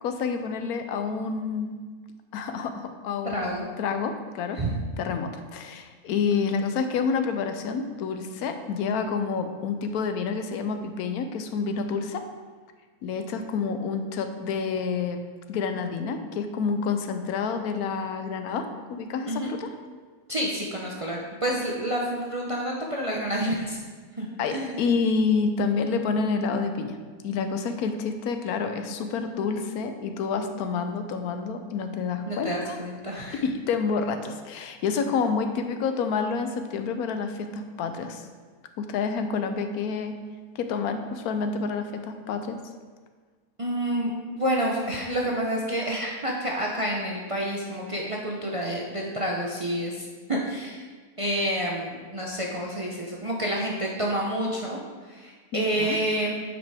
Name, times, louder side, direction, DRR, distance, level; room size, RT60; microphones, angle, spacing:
voice 1, 0.0-1.7 2.3-4.6 5.0-12.2 13.0-15.2 15.5-19.7 24.4-27.0 27.2-32.8 33.4-38.3 38.8-40.1 40.6-42.6 55.5-56.0, left 5 dB, 75° left, 7 dB, 1.1 m, -28 dB
voice 2, 3.2-3.6 4.5-4.7 19.2-19.5 20.3-23.8 24.2-24.8 32.3-33.4 43.6-50.8 51.2-56.3, right 1 dB, 45° right, -2 dB, 0.4 m, -29 dB
9.1 x 5.2 x 3.4 m, 1.5 s
omnidirectional pair, 1.7 m